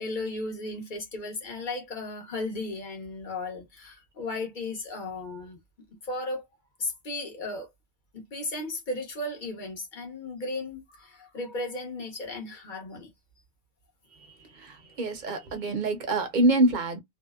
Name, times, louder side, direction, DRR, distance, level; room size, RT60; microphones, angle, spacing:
voice 1, 0.0-5.6 5.9-6.4 6.8-7.7 8.1-13.1, left 2 dB, 50° left, 1.0 m, -35 dB
voice 2, 14.5-17.0, right 2 dB, 50° right, 0.8 m, -25 dB
2.7 x 2.0 x 2.2 m
omnidirectional pair, 1.1 m